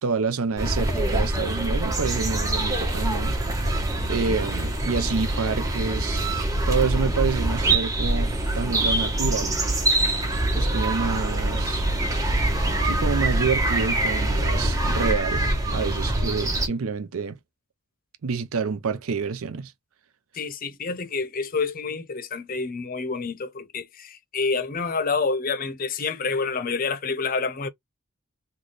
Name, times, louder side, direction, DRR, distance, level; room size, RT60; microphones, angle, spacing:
voice 1, 0.0-3.4 4.0-6.4 6.7-9.5 10.5-11.9 12.8-17.4 18.2-19.7, right 5 dB, 80° right, 0.6 m, -28 dB
sound 1, 0.6-16.7, right 1 dB, 15° right, 1.1 m, -24 dB
voice 2, 20.3-27.7, left 4 dB, 40° left, 0.6 m, -28 dB
3.9 x 2.3 x 3.2 m
head